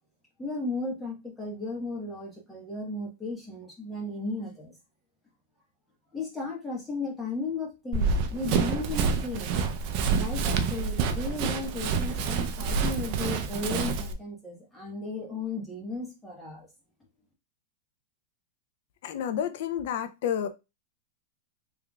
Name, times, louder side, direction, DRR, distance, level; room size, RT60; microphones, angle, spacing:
voice 1, 0.4-4.7 6.1-9.6 10.1-16.7, left 3 dB, 5° left, 1.3 m, -35 dB
Run, 7.9-14.1, right 5 dB, 45° right, 0.5 m, -28 dB
voice 2, 19.0-20.5, left 9 dB, 60° left, 0.5 m, -30 dB
3.5 x 3.4 x 2.3 m
supercardioid pair, 155°, 0 cm